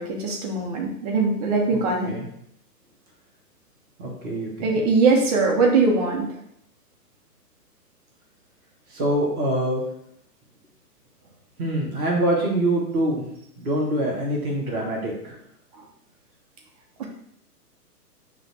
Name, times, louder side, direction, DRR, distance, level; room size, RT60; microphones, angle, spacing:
voice 1, 0.0-2.2 4.6-6.3 17.0-17.1, right 4 dB, 25° right, 0 dB, 1.1 m, -21 dB
voice 2, 4.0-4.8 8.9-9.8 11.6-13.2 13.6-15.3, right 1 dB, 5° right, -16 dB, 0.5 m, -24 dB
6.5 x 3.4 x 6.1 m, 0.71 s
hypercardioid pair, 165°, 48 cm